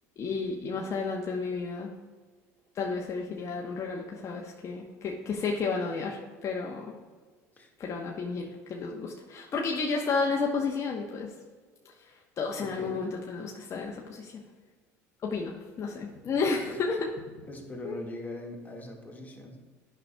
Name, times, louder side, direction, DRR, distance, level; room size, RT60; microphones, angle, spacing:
voice 1, 0.2-1.9 2.7-6.9 7.8-11.3 12.0-14.4 15.2-17.1 17.4-17.5 17.8-18.0, left 4 dB, 40° left, -1 dB, 0.9 m, -32 dB
voice 2, 12.5-13.1 16.6-16.8 17.5-19.6, left 1 dB, 20° left, 1 dB, 1.7 m, -41 dB
10.5 x 5.7 x 2.2 m, 1.5 s
hypercardioid pair, 80°, 8 cm